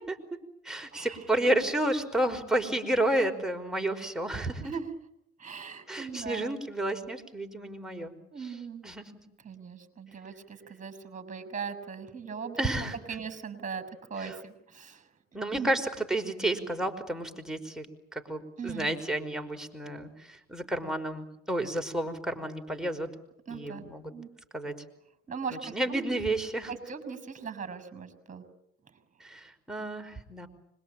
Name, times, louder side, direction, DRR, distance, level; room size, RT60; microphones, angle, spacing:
voice 1, 0.6-4.7 5.9-8.1 8.4-8.5 8.8-9.1 12.6-13.0 14.2-14.4 15.3-17.9 18.1-23.1 23.5-24.1 24.5-24.7 25.5-26.7 29.2-30.5, right 1 dB, ahead, 4 dB, 5.1 m, -31 dB
voice 2, 5.4-6.5 8.3-8.8 9.4-12.7 13.1-13.8 14.1-15.0 15.5-15.7 18.6-18.9 23.5-23.8 24.1-24.3 25.3-26.0 26.7-28.4, right 6 dB, 25° right, 12 dB, 6.6 m, -39 dB
26.0 x 22.0 x 9.0 m, 0.77 s
supercardioid pair, 75°, 30 cm